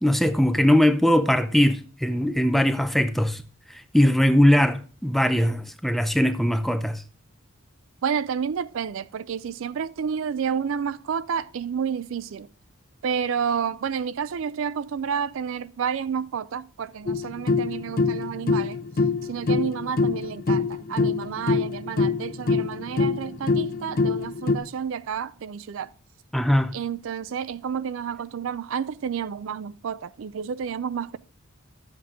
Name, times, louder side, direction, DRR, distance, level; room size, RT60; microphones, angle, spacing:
voice 1, 0.0-3.4 3.7-7.0 26.3-26.7, left 1 dB, ahead, 0.5 m, -20 dB
voice 2, 8.0-12.5 13.0-18.8 19.2-25.9 26.7-31.2, right 7 dB, 60° right, 0.4 m, -30 dB
sound 1, 17.1-24.6, left 4 dB, 45° left, 0.6 m, -25 dB
12.5 x 7.9 x 3.6 m
head